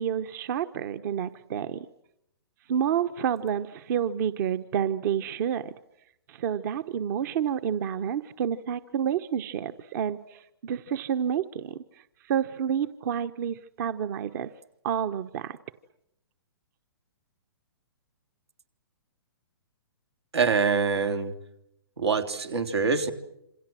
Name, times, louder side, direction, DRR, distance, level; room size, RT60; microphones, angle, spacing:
voice 1, 0.0-1.9 2.7-5.7 6.3-14.5 14.8-15.6, right 8 dB, 45° right, 12 dB, 1.1 m, -29 dB
voice 2, 20.3-21.3 22.0-23.1, right 5 dB, 85° right, 7 dB, 3.5 m, -25 dB
28.0 x 26.5 x 7.7 m, 0.81 s
hypercardioid pair, 130°, 13 cm